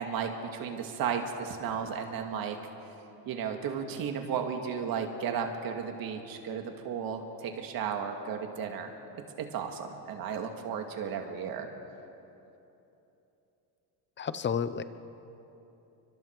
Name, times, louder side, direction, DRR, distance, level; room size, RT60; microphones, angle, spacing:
voice 1, 0.0-2.6 3.3-8.9 9.4-11.7, right 7 dB, 60° right, 4 dB, 2.2 m, -34 dB
voice 2, 14.2-14.8, left 7 dB, 30° left, 13 dB, 0.8 m, -31 dB
30.0 x 24.5 x 4.7 m, 3.0 s
cardioid pair, 145°, 40 cm